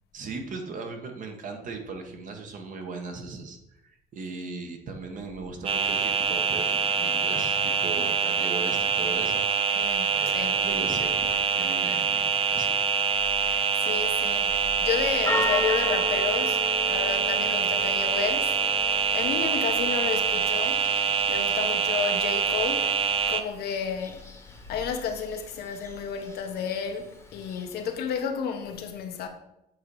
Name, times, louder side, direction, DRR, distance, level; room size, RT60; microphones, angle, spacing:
voice 1, 0.1-3.6 3.8-9.8 10.1-12.8, right 3 dB, 50° right, 1.1 m, -38 dB
sound 1, 5.6-23.4, right 6 dB, 35° right, 0.4 m, -25 dB
voice 2, 9.8-10.5 13.4-16.6 16.9-18.5 19.1-20.8 21.3-22.9 23.3-24.3 24.7-29.3, left 6 dB, 70° left, 0.8 m, -31 dB
Church bell, 14.2-28.0, left 2 dB, 15° left, 1.0 m, -37 dB
7.8 x 2.8 x 4.7 m
cardioid pair, 110°, 17 cm